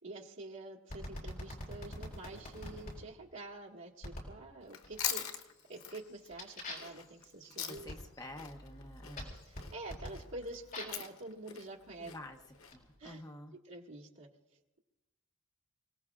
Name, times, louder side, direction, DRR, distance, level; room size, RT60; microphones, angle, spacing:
voice 1, 0.0-5.4 5.7-7.9 9.5-12.1 13.0-13.2 13.6-14.3, right 2 dB, 65° right, -3 dB, 1.9 m, -47 dB
sound 1, 0.9-3.0 4.0-4.4 4.8-5.3 5.7-11.1 11.9-13.1, left 1 dB, 40° left, 4.8 m, -46 dB
Chewing mastication, 4.6-8.1 8.4-12.7, left 9 dB, 85° left, 1.1 m, -42 dB
voice 2, 7.4-9.3 12.0-12.4 12.7-13.6, left 1 dB, 20° left, 4 dB, 0.7 m, -49 dB
27.5 x 18.0 x 2.4 m, 1.1 s
head